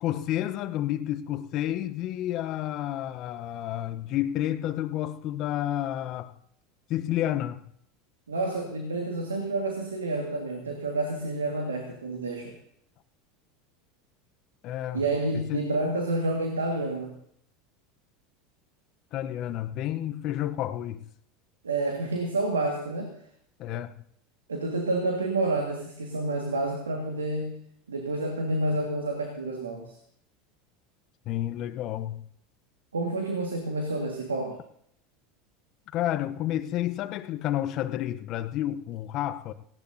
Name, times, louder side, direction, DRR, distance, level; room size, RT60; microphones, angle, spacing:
voice 1, 0.0-6.3 6.9-7.7 14.6-15.1 15.3-15.7 19.1-21.0 23.6-24.0 31.3-32.2 35.9-39.5, left 12 dB, 50° left, 0.9 m, -30 dB
voice 2, 8.3-12.6 14.9-17.2 21.6-23.1 24.5-27.6 27.9-30.0 32.9-34.6, right 2 dB, 90° right, 1.8 m, -29 dB
18.0 x 16.5 x 2.7 m
hypercardioid pair, 80°, 0 cm